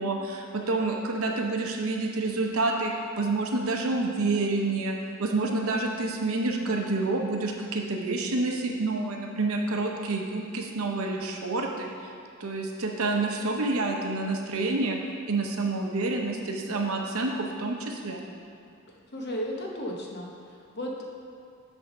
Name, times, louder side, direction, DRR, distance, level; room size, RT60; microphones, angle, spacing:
voice 1, 0.0-4.9 5.2-12.1 12.4-15.0 15.3-18.2, right 2 dB, 75° right, 1 dB, 0.8 m, -28 dB
voice 2, 19.1-21.0, equal, 50° left, -1 dB, 0.9 m, -34 dB
7.8 x 3.5 x 6.0 m, 2.6 s
head